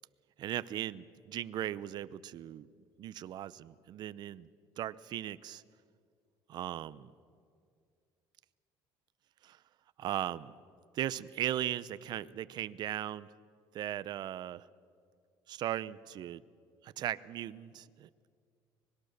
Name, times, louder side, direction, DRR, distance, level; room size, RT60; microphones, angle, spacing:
voice 1, 0.4-2.7 3.0-4.5 4.8-5.6 6.5-7.1 9.4-9.6 10.0-10.5 10.9-13.3 13.7-14.6 15.5-16.4 16.8-18.1, right 12 dB, 55° right, 17 dB, 0.7 m, -38 dB
24.5 x 20.5 x 6.6 m, 2.2 s
cardioid pair, 120°, 9 cm